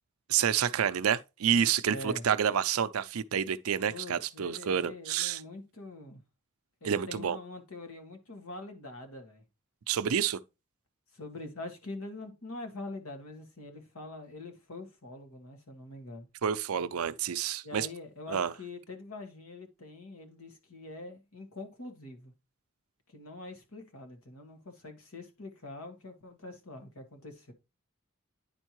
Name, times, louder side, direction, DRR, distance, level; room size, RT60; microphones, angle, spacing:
voice 1, 0.3-5.4 6.8-7.4 9.9-10.4 16.4-17.9 18.3-18.5, right 8 dB, 75° right, 0.5 m, -29 dB
voice 2, 1.9-2.2 3.9-6.2 6.8-9.4 11.1-16.3 17.6-22.3 23.1-27.5, left 2 dB, 75° left, 1.6 m, -44 dB
9.9 x 4.4 x 3.0 m
head